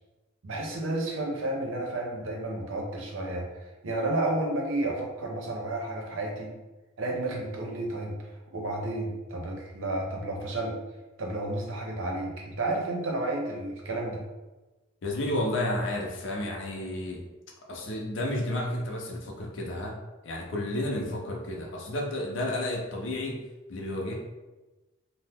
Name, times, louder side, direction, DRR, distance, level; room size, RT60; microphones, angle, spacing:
voice 1, 0.4-3.5 3.8-6.5 7.0-8.2 8.5-10.8 11.2-14.2, right 2 dB, 80° right, 0 dB, 0.6 m, -31 dB
voice 2, 15.0-17.2 17.7-20.0 20.2-23.4 23.7-24.1, left 1 dB, 65° left, -1 dB, 0.6 m, -31 dB
2.8 x 2.0 x 3.4 m, 1.1 s
head